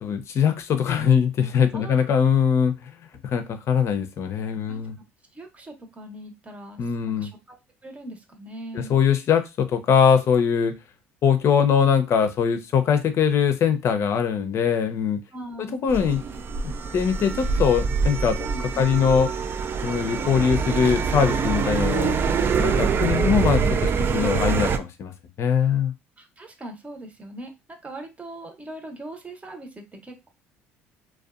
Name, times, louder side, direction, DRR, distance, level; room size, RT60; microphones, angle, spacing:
voice 1, 0.0-2.9 3.2-4.9 6.8-7.3 8.7-10.7 11.2-15.2 15.6-16.2 16.9-18.4 18.8-19.3 19.8-22.2 22.6-25.1 25.4-25.9, left 7 dB, 50° left, 0.5 m, -22 dB
voice 2, 1.7-2.2 4.7-4.8 5.3-7.6 7.8-9.0 15.3-15.8 18.4-19.2 26.2-30.3, right 1 dB, 25° right, 0.8 m, -40 dB
sound 1, 15.9-24.8, right 5 dB, 40° right, 0.3 m, -24 dB
2.5 x 2.2 x 2.4 m
hypercardioid pair, 70°, 6 cm